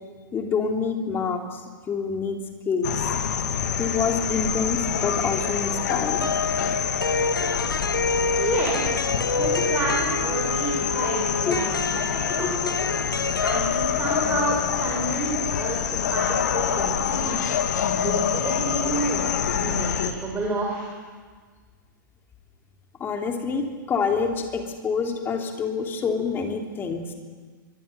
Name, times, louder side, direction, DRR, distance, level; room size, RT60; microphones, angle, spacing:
voice 1, 0.3-1.6 1.9-2.4 2.7-2.9 3.8-6.3 11.5-11.6 12.4-12.6 23.0-27.0, left 5 dB, 20° left, 3 dB, 3.0 m, -26 dB
sound 1, 2.8-20.1, left 7 dB, 55° left, 1.9 m, -26 dB
sound 2, 6.2-13.6, left 3 dB, 85° left, 1.2 m, -28 dB
voice 2, 8.4-9.1 9.3-11.7 12.1-12.8 13.4-17.6 18.0-19.2 19.5-20.9, right 3 dB, 15° right, -3 dB, 5.2 m, -30 dB
23.5 x 23.5 x 6.7 m, 1.5 s
figure-of-eight pair, 105°, 11 cm